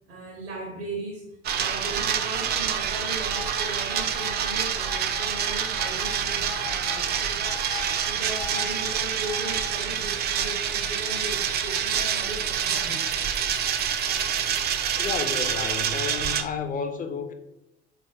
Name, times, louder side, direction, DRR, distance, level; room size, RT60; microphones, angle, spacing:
voice 1, 0.1-7.7 8.1-13.2, right 2 dB, 80° right, -1 dB, 0.8 m, -37 dB
sound 1, 1.4-16.4, right 8 dB, 35° right, 0.4 m, -27 dB
sound 2, 3.3-9.7, left 6 dB, 55° left, 0.9 m, -41 dB
voice 2, 15.0-17.3, left 5 dB, 25° left, 7 dB, 0.5 m, -31 dB
3.7 x 2.5 x 3.4 m, 0.88 s
figure-of-eight pair, 60°, 31 cm